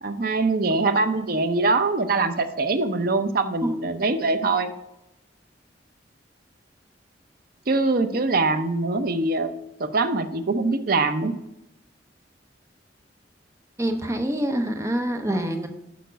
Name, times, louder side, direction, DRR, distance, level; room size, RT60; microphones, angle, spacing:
voice 1, 0.0-4.7 7.7-9.5 9.8-11.3, right 3 dB, 55° right, 9 dB, 0.6 m, -23 dB
voice 2, 13.8-15.7, right 1 dB, 15° right, 5 dB, 0.7 m, -25 dB
6.8 x 5.1 x 5.1 m, 0.86 s
head